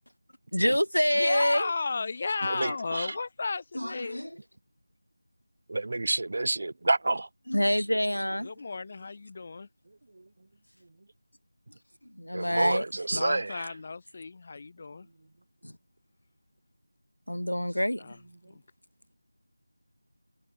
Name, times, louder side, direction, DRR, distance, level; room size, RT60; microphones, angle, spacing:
voice 1, 0.5-1.7 2.6-2.7 3.7-4.3 7.5-8.5 12.2-12.8 13.1-13.2 15.6-15.7 17.3-18.0, equal, 80° left, 3.0 m, -27 dB
voice 2, 1.1-4.2 8.4-9.7 13.1-15.1 18.0-18.2 18.5-18.6, left 4 dB, 30° left, 1.5 m, -34 dB
voice 3, 2.4-3.1 5.7-7.3 12.3-13.7, right 2 dB, 45° right, 1.2 m, -29 dB
figure-of-eight pair, 170°, 0 cm